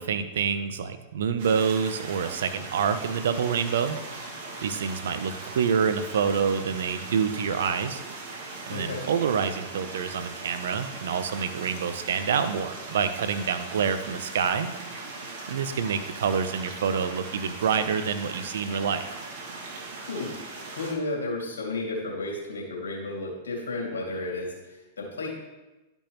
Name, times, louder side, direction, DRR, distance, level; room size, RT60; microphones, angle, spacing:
voice 1, 0.0-4.0 4.6-8.0 8.7-14.7 15.5-19.1, right 6 dB, 75° right, 10 dB, 0.7 m, -27 dB
sound 1, 1.4-20.9, right 3 dB, 60° right, 2.0 m, -39 dB
voice 2, 8.7-9.0 20.1-20.3 20.8-25.3, left 2 dB, 85° left, -2 dB, 2.3 m, -32 dB
12.0 x 5.3 x 3.0 m, 1.1 s
hypercardioid pair, 110°, 0 cm